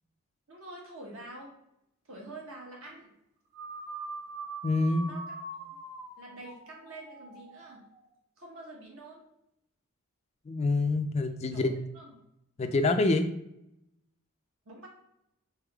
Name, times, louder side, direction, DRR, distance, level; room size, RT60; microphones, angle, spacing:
voice 1, 0.5-1.6 2.1-3.1 5.0-5.6 6.2-7.8 8.4-9.3 11.5-12.1 14.6-14.9, right 2 dB, 75° right, -2 dB, 1.3 m, -46 dB
sound 1, 3.5-8.1, right 2 dB, 35° right, 1.1 m, -43 dB
voice 2, 4.6-5.1 10.5-11.8 12.6-13.3, left 2 dB, 30° left, 7 dB, 0.3 m, -26 dB
4.0 x 3.6 x 3.4 m, 0.81 s
head